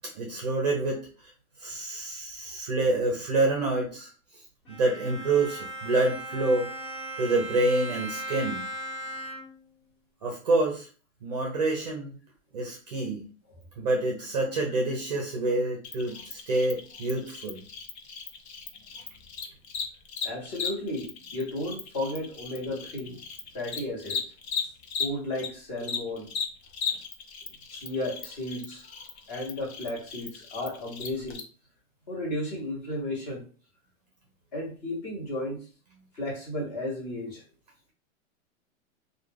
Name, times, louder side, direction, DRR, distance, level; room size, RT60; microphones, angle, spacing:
voice 1, 0.1-1.0 1.6-4.1 4.7-6.7 7.2-8.6 10.2-10.9 11.2-12.1 12.5-13.2 13.8-17.6, right 2 dB, 30° right, 0 dB, 0.4 m, -27 dB
Bowed string instrument, 4.7-9.7, right 1 dB, 80° left, 1.1 m, -38 dB
Cricket, 15.8-25.5 25.8-31.4, left 6 dB, 55° left, 0.6 m, -36 dB
voice 2, 20.2-23.2 23.5-24.2 25.0-26.3 27.7-28.8 29.3-31.4 32.1-33.4 34.5-35.7 36.2-37.4, left 1 dB, 30° left, -2 dB, 0.9 m, -34 dB
2.2 x 2.2 x 3.1 m, 0.37 s
hypercardioid pair, 160°, 41 cm